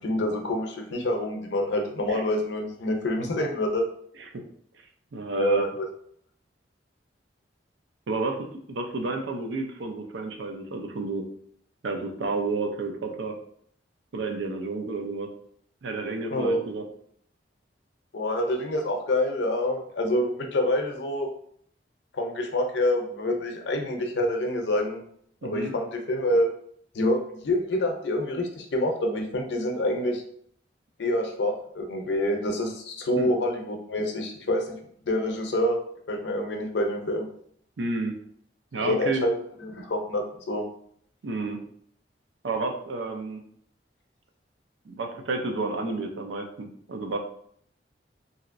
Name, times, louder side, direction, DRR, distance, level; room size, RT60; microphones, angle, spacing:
voice 1, 0.0-3.8 5.4-5.9 16.3-16.6 18.1-21.3 22.1-25.0 25.4-26.5 26.9-30.2 31.0-34.8 35.1-35.8 36.1-37.2 38.8-39.3 39.6-40.6, left 1 dB, 70° left, 3 dB, 0.6 m, -27 dB
voice 2, 5.1-5.6 8.1-8.4 8.7-11.2 11.8-13.3 14.1-15.3 15.8-16.8 25.4-25.7 33.2-33.3 37.8-38.2 38.7-39.2 41.2-41.6 42.4-43.4 44.9-47.2, right 3 dB, 85° right, 3 dB, 0.5 m, -30 dB
2.9 x 2.7 x 2.5 m, 0.65 s
head